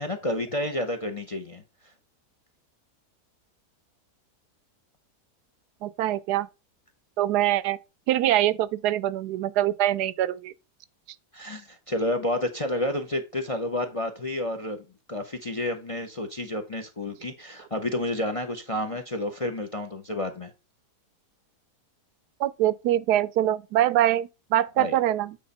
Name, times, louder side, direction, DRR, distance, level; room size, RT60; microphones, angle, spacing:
voice 1, 0.0-1.6 11.3-14.8 15.1-20.5 24.8-25.0, left 1 dB, 35° left, 0.6 m, -30 dB
voice 2, 5.8-6.5 7.2-7.8 8.1-10.5 22.4-25.4, right 13 dB, 85° right, 1.1 m, -24 dB
8.7 x 3.5 x 5.3 m
omnidirectional pair, 1.7 m